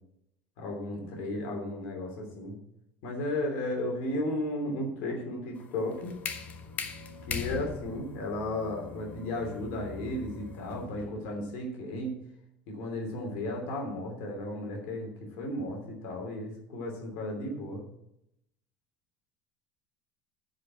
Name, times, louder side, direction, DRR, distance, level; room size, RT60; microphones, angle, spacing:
voice 1, 0.6-2.6 3.0-6.1 7.3-12.2 12.7-17.8, left 1 dB, 70° left, 1 dB, 2.9 m, -34 dB
sound 1, 5.6-11.3, left 6 dB, 40° left, 1.3 m, -40 dB
sound 2, 5.9-11.0, left 3 dB, 85° left, 2.7 m, -47 dB
9.6 x 5.3 x 7.8 m, 0.80 s
hypercardioid pair, 85°, 4 cm